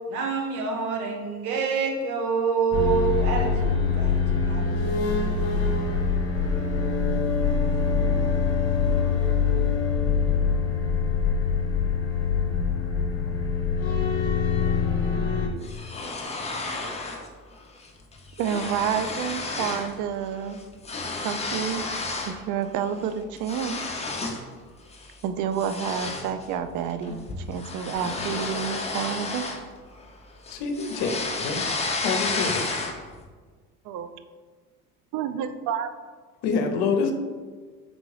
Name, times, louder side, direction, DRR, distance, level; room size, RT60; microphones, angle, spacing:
voice 1, 0.1-4.2 4.4-5.0 5.3-5.8, right 6 dB, 80° right, 2 dB, 0.9 m, -27 dB
sound 1, 2.7-15.5, left 5 dB, 30° left, 1.1 m, -24 dB
sound 2, 15.6-17.3 17.6-17.9 18.1-19.9 20.2-22.4 22.8-24.5 24.9-25.1 25.6-30.1 30.4-33.2, left 3 dB, 15° left, 0.6 m, -32 dB
voice 2, 18.4-20.6 21.2-21.8 22.2-23.8 25.2-29.4 33.9-34.1 35.1-35.9, right 8 dB, 45° right, 10 dB, 0.4 m, -29 dB
voice 3, 30.5-31.7 31.9-32.7 36.4-37.1, left 5 dB, 60° left, 4 dB, 0.7 m, -26 dB
3.9 x 3.4 x 3.2 m, 1.5 s
hypercardioid pair, 70°, 44 cm